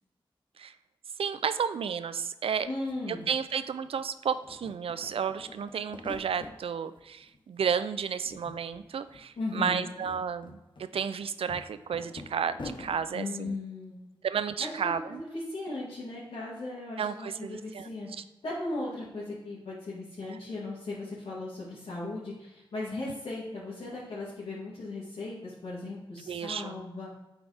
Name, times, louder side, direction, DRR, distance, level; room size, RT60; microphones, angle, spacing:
voice 1, 1.2-2.7 3.1-13.6 14.2-15.2 17.0-17.9 18.2-18.3 20.3-20.4 26.3-26.8, right 7 dB, 80° right, 12 dB, 0.4 m, -32 dB
sound 1, 2.6-2.7 2.9-4.0 4.3-6.6 7.0-7.7 8.0-8.8 9.1-9.2 9.7-13.0, left 3 dB, 55° left, 1.0 m, -45 dB
voice 2, 2.7-3.2 9.4-9.9 13.1-14.0 14.6-18.1 18.4-27.1, left 2 dB, 80° left, -11 dB, 2.0 m, -37 dB
8.6 x 4.0 x 3.4 m, 1.0 s
cardioid pair, 50°, 10 cm